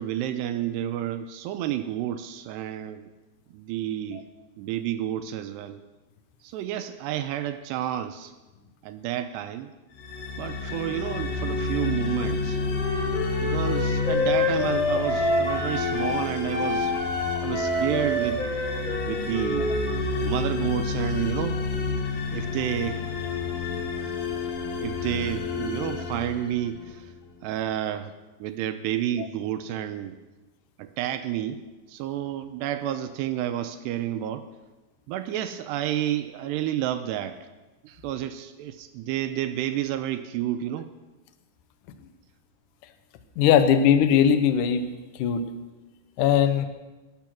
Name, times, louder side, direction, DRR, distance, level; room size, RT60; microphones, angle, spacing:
voice 1, 0.0-3.1 3.5-4.3 4.6-5.8 6.4-8.3 8.8-9.7 10.4-12.6 13.4-16.9 17.4-18.5 19.0-19.7 20.2-21.6 22.3-23.0 24.8-27.1 27.4-28.1 28.4-30.2 30.8-31.6 31.9-34.5 35.1-37.4 37.8-40.9, right 11 dB, 80° right, 9 dB, 2.7 m, -30 dB
sound 1, 10.0-27.1, left 4 dB, 60° left, 3.1 m, -30 dB
Wind instrument woodwind instrument, 12.7-16.2 16.5-20.3, left 1 dB, 15° left, 2.1 m, -27 dB
voice 2, 43.4-44.9 45.2-45.5 46.2-46.7, left 8 dB, 80° left, 9 dB, 1.8 m, -19 dB
17.5 x 12.0 x 6.0 m, 1.2 s
omnidirectional pair, 5.1 m